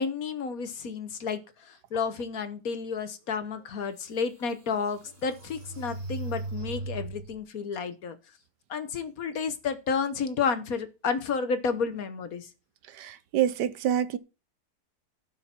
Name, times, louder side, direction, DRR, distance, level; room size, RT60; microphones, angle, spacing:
voice 1, 0.0-8.2 8.7-12.5, left 5 dB, 60° left, 1.5 m, -31 dB
sound 1, 3.6-3.7 4.2-7.4, right 2 dB, 45° right, 3.8 m, -38 dB
voice 2, 12.9-14.2, right 10 dB, 80° right, 1.4 m, -27 dB
16.0 x 5.8 x 4.4 m
omnidirectional pair, 1.8 m